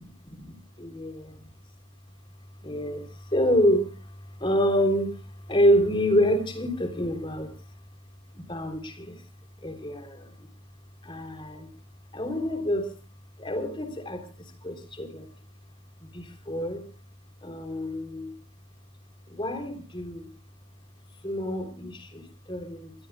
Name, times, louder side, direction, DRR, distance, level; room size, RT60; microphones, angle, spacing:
voice 1, 0.0-1.4 2.6-3.0 3.3-3.9 4.4-5.1 5.5-7.5 8.3-9.2 9.6-10.3 11.0-11.7 12.1-12.9 13.4-14.2 14.6-15.3 16.1-16.8 17.4-18.3 19.3-20.3 21.2-22.9, equal, 25° left, 5 dB, 3.5 m, -27 dB
26.0 x 19.0 x 2.3 m, 0.38 s
head